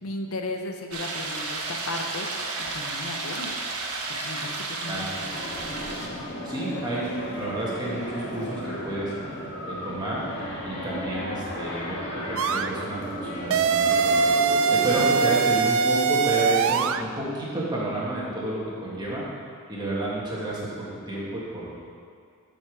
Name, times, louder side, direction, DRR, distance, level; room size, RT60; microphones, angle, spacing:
voice 1, 0.0-2.3 2.6-3.5 4.2-5.1, left 2 dB, 70° left, 4 dB, 0.8 m, -35 dB
sound 1, 0.9-6.1, right 3 dB, 80° right, 1.2 m, -32 dB
sound 2, 4.8-15.4, equal, 50° left, 1.7 m, -35 dB
voice 2, 4.8-5.2 6.4-10.2 10.6-19.2 19.7-21.8, right 1 dB, 20° right, -6 dB, 1.8 m, -31 dB
sound 3, 12.4-12.7 13.5-17.0, right 5 dB, 60° right, 0.4 m, -22 dB
11.0 x 5.2 x 4.8 m, 2.3 s
head